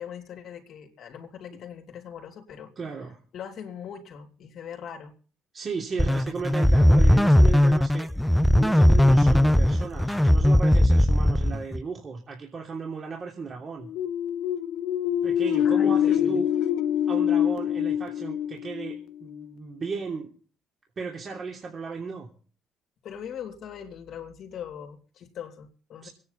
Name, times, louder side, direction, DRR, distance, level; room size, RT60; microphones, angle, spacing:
voice 1, 0.0-2.7 3.3-5.1 15.6-16.4 23.0-26.1, left 8 dB, 65° left, 4 dB, 3.1 m, -41 dB
voice 2, 2.8-3.2 5.5-8.1 8.6-13.9 15.2-16.5 17.1-20.3 21.0-22.3 26.0-26.1, right 5 dB, 45° right, 0 dB, 3.1 m, -35 dB
sound 1, 6.0-11.8, left 1 dB, 5° left, 0.8 m, -19 dB
sound 2, 13.8-19.5, left 10 dB, 80° left, 1.0 m, -25 dB
25.0 x 9.8 x 4.1 m, 0.41 s
supercardioid pair, 60°, 0 cm